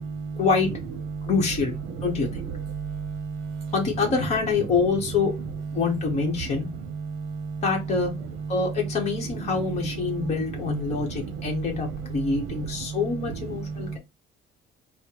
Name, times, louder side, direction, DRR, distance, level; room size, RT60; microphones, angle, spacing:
voice 1, 0.4-0.7 1.3-1.7 2.0-2.4 3.7-5.3 5.7-6.7 7.6-8.1 8.5-14.0, left 4 dB, 35° left, 0 dB, 1.0 m, -25 dB
voice 2, 2.7-3.7 7.0-7.6 10.1-10.3 10.9-11.3 12.5-12.6 13.5-14.0, right 5 dB, 65° right, 6 dB, 0.7 m, -33 dB
4.2 x 2.1 x 4.2 m, 0.22 s
cardioid pair, 180°, 20 cm